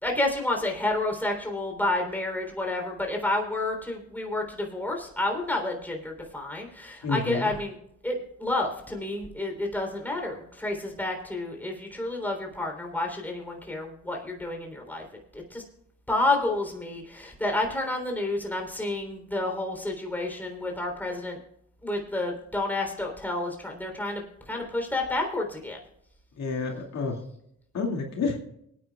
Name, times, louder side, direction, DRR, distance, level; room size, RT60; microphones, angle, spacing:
voice 1, 0.0-7.7 8.0-15.0 15.3-15.6 16.1-21.4 21.8-25.8, left 2 dB, 5° left, 1 dB, 3.5 m, -30 dB
voice 2, 7.0-7.5 26.4-27.2 27.7-28.4, left 4 dB, 60° left, 0 dB, 2.4 m, -29 dB
24.0 x 9.4 x 2.4 m, 0.74 s
cardioid pair, 90°, 30 cm